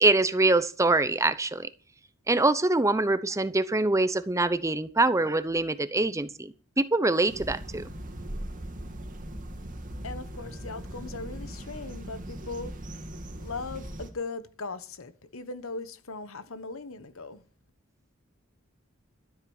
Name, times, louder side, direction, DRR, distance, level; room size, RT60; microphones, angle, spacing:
voice 1, 0.0-1.7 2.3-7.8, right 2 dB, 15° right, 0.7 m, -24 dB
sound 1, 7.3-14.1, right 1 dB, 40° right, 2.2 m, -39 dB
voice 2, 10.0-12.7 13.4-17.4, left 3 dB, 75° left, 1.2 m, -39 dB
13.0 x 7.9 x 7.1 m
head